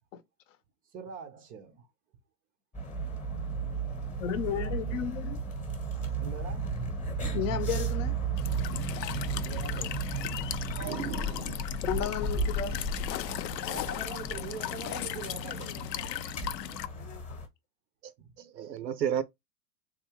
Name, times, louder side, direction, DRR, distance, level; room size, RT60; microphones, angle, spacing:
voice 1, 0.9-1.9 4.5-5.0 6.2-7.1 9.4-10.0 13.6-15.8 18.2-18.3, right 5 dB, 20° right, 0.5 m, -43 dB
sound 1, 2.7-17.5, right 3 dB, 15° left, 1.0 m, -34 dB
voice 2, 4.2-5.4 7.3-8.2 11.8-12.8 13.7-13.8 15.8-16.2 16.6-17.4, left 9 dB, 50° left, 0.8 m, -34 dB
Walk footsteps / Chirp tweet / Stream, 8.4-16.9, left 12 dB, 80° left, 0.5 m, -37 dB
voice 3, 10.8-11.6 12.0-12.1 18.0-18.1 18.4-19.2, right 9 dB, 85° right, 0.7 m, -33 dB
3.6 x 2.7 x 2.8 m
hypercardioid pair, 110°, 49 cm